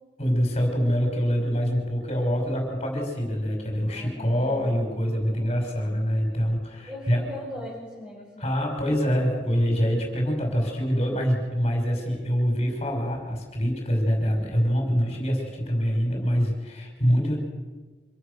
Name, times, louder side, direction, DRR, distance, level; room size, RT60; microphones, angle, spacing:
voice 1, 0.2-7.2 8.4-17.4, equal, 35° left, 1 dB, 5.4 m, -25 dB
voice 2, 3.9-6.2 6.9-8.7, equal, 10° right, -6 dB, 6.3 m, -41 dB
26.0 x 17.5 x 6.9 m, 1.3 s
head